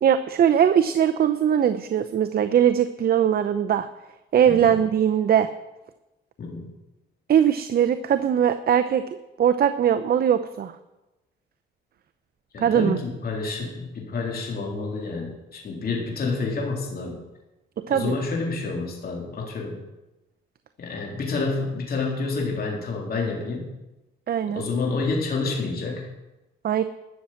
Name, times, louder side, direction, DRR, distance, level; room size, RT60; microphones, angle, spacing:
voice 1, 0.0-3.9 4.3-5.5 7.3-9.0 9.4-10.7 12.6-13.0 17.9-18.1 24.3-24.6 26.6-26.8, right 9 dB, 50° right, 10 dB, 0.7 m, -20 dB
voice 2, 6.4-6.7 12.5-17.2 17.9-19.8 20.8-23.7 24.5-26.1, left 3 dB, 50° left, -1 dB, 3.5 m, -28 dB
12.5 x 7.2 x 7.8 m, 1.0 s
cardioid pair, 90°, 20 cm